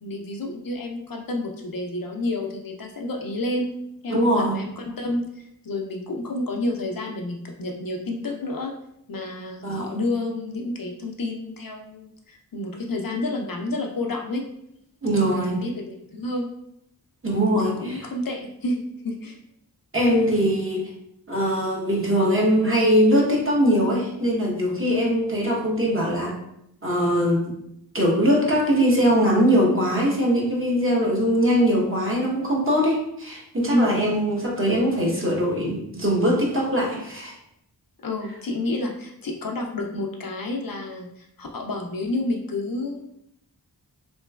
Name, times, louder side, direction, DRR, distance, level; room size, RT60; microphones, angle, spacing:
voice 1, 0.0-3.7 4.0-8.7 9.1-14.4 15.1-16.5 17.6-19.4 33.7-34.0 38.0-43.0, left 2 dB, 50° left, 1 dB, 0.5 m, -30 dB
voice 2, 4.1-4.6 9.6-10.0 15.0-15.6 17.2-18.0 19.9-20.9 21.3-26.4 26.8-27.5 27.9-37.3, equal, 30° right, -3 dB, 0.9 m, -21 dB
3.1 x 3.0 x 2.3 m, 0.77 s
wide cardioid pair, 45°, 44 cm